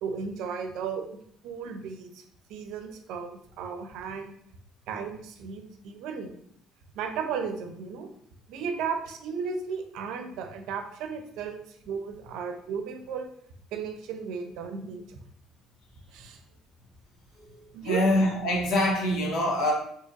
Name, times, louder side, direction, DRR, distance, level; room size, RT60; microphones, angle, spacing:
voice 1, 0.0-1.0 1.4-2.2 2.5-4.3 4.9-6.3 7.0-8.1 8.5-13.3 13.7-15.2 16.1-16.4 17.7-18.0, right 6 dB, 75° right, 5 dB, 0.5 m, -35 dB
voice 2, 17.4-19.7, left 1 dB, 65° left, -1 dB, 1.1 m, -25 dB
3.9 x 2.7 x 2.5 m, 0.66 s
cardioid pair, 120°, 0 cm